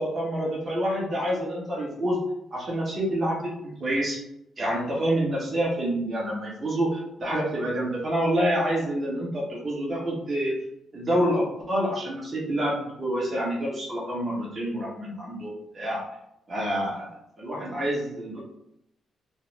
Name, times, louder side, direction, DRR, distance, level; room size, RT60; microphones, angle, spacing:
voice 1, 0.0-2.2 2.5-4.2 4.6-10.5 10.9-16.0 16.5-18.4, right 1 dB, 35° right, -5 dB, 1.3 m, -27 dB
3.4 x 2.1 x 3.4 m, 0.81 s
cardioid pair, 95°, 0 cm